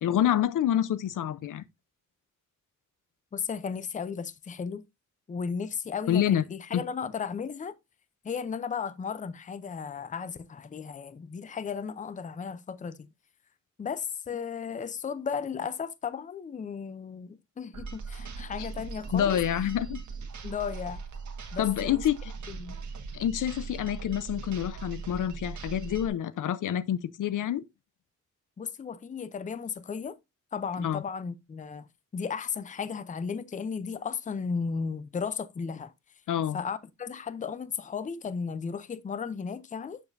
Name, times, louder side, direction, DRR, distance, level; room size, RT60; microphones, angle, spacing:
voice 1, 0.0-1.6 6.1-6.4 6.7-6.8 18.6-18.7 19.1-20.0 21.6-22.3 23.1-27.6 30.8-31.0 36.3-36.6, left 10 dB, 80° left, 0.6 m, -27 dB
voice 2, 3.3-4.8 5.3-7.8 8.2-13.1 13.8-19.4 20.4-21.0 21.5-22.0 22.5-22.8 28.6-30.2 30.5-31.9 32.1-35.9 36.5-40.0, left 6 dB, 25° left, 0.5 m, -35 dB
sound 1, 17.7-26.1, right 5 dB, 65° right, 1.5 m, -39 dB
7.2 x 7.0 x 2.6 m
wide cardioid pair, 135°, 31 cm